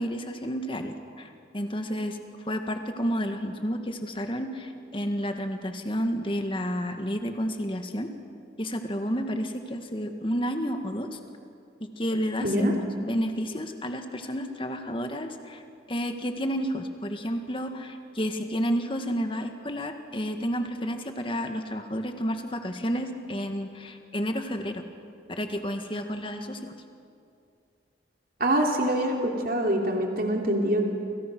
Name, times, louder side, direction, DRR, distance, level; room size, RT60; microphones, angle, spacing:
voice 1, 0.0-8.1 8.6-11.2 12.0-15.6 15.9-24.8 25.3-26.7, equal, 30° left, 6 dB, 1.9 m, -31 dB
voice 2, 12.4-12.7 28.4-30.8, right 1 dB, 50° right, 1 dB, 3.2 m, -24 dB
29.5 x 27.5 x 6.3 m, 2.4 s
head